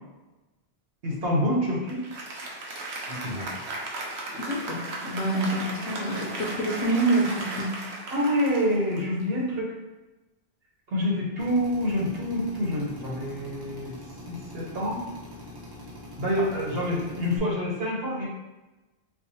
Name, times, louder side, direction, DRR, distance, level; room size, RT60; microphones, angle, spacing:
voice 1, 1.0-2.0 3.1-3.6 8.1-9.7 10.9-13.9 14.3-15.0 16.2-18.3, equal, 70° right, -4 dB, 1.2 m, -27 dB
Applause, 1.9-9.5, right 2 dB, 85° right, 1.0 m, -36 dB
voice 2, 4.4-7.7, right 2 dB, 85° left, 0 dB, 0.9 m, -27 dB
Drill, 11.4-17.4, left 1 dB, 25° right, 0.7 m, -44 dB
4.7 x 2.2 x 2.7 m, 1.1 s
omnidirectional pair, 1.1 m